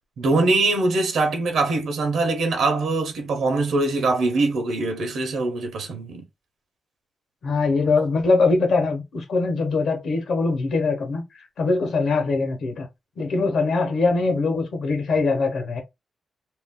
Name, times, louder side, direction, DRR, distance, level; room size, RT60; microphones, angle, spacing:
voice 1, 0.2-6.2, right 3 dB, 80° right, 0.7 m, -22 dB
voice 2, 7.4-11.2 11.6-12.9 13.2-15.8, left 3 dB, 70° left, 0.9 m, -22 dB
2.5 x 2.1 x 3.6 m
wide cardioid pair, 140°, 0 cm